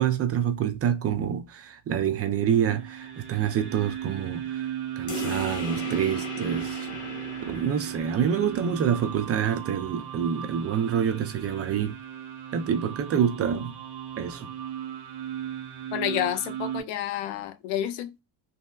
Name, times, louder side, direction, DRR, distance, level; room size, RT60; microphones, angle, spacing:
voice 1, 0.0-6.9 7.4-12.0 12.5-13.8 14.2-14.5, right 8 dB, 35° right, 0.4 m, -27 dB
sound 1, 2.5-16.8, right 10 dB, 60° right, 1.1 m, -36 dB
sound 2, 5.1-10.1, left 4 dB, 60° left, 1.5 m, -39 dB
voice 2, 15.9-18.2, left 11 dB, 85° left, 0.6 m, -29 dB
3.0 x 2.7 x 2.3 m
cardioid pair, 115°, 45 cm